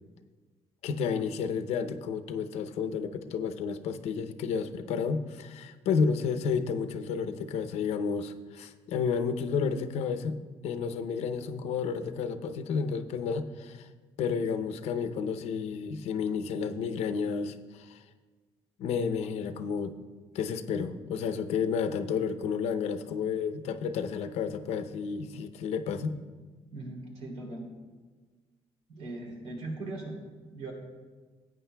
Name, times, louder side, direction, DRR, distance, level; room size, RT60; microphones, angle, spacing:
voice 1, 0.8-13.9 14.2-18.0 18.8-20.0 20.3-26.1, left 6 dB, 85° left, 10 dB, 0.6 m, -31 dB
voice 2, 26.7-27.7 28.9-30.7, right 2 dB, 85° right, 0 dB, 2.9 m, -39 dB
17.0 x 9.2 x 2.2 m, 1.4 s
cardioid pair, 135°, 11 cm